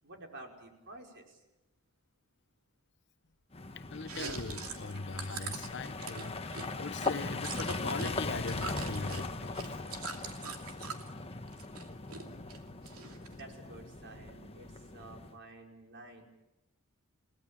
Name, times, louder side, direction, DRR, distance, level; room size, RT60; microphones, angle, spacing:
voice 1, 0.0-1.4 13.3-16.3, right 2 dB, 55° right, 5.4 m, -51 dB
sound 1, 3.5-15.3, left 3 dB, 25° left, 1.2 m, -39 dB
voice 2, 3.8-9.6, left 4 dB, 55° left, 0.9 m, -41 dB
Chewing mastication, 4.0-8.1 8.4-11.1 11.5-12.2 12.5-13.4, right 5 dB, 75° right, 2.7 m, -42 dB
29.5 x 18.5 x 8.8 m
head